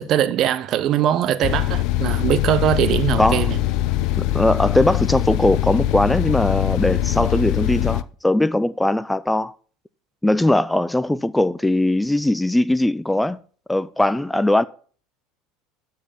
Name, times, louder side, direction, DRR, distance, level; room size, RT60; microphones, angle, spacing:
voice 1, 0.0-3.6, right 11 dB, 50° right, 0.8 m, -21 dB
sound 1, 1.4-8.0, left 13 dB, 55° left, 0.5 m, -22 dB
sound 2, 1.9-7.4, left 9 dB, 75° left, 1.2 m, -38 dB
voice 2, 4.2-9.5 10.2-13.4 13.7-14.6, left 1 dB, 5° left, 0.4 m, -20 dB
13.5 x 4.7 x 7.1 m
hypercardioid pair, 75°, 0 cm